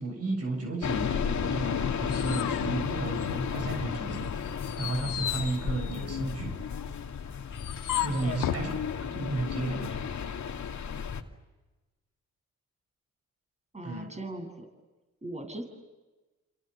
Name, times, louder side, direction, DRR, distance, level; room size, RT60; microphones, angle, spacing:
voice 1, 0.0-4.3 4.8-6.6 8.0-8.7 9.1-10.0 13.8-14.1, right 2 dB, 50° right, 4 dB, 7.4 m, -33 dB
sound 1, 0.8-11.2, left 7 dB, 65° left, 2.5 m, -33 dB
sound 2, 1.7-3.7 4.1-8.7, left 11 dB, 85° left, 1.5 m, -36 dB
voice 2, 8.1-8.8 13.7-14.7 15.2-15.6, right 1 dB, 20° right, 5 dB, 7.7 m, -40 dB
29.5 x 27.0 x 7.2 m, 1.2 s
supercardioid pair, 55°, 31 cm